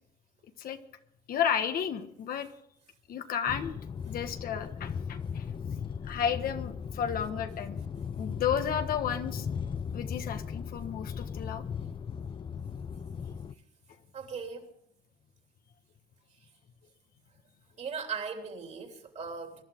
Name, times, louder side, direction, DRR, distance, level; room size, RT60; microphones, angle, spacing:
voice 1, 1.3-2.5 3.1-3.7 4.1-5.5 6.0-7.8 8.2-9.5 9.9-11.7, left 8 dB, 60° left, 1.5 m, -32 dB
sound 1, 3.5-13.5, left 6 dB, 30° left, 0.5 m, -37 dB
voice 2, 14.1-14.7 17.8-19.6, right 5 dB, 45° right, 3.1 m, -38 dB
22.5 x 11.5 x 3.8 m
cardioid pair, 110°, 17 cm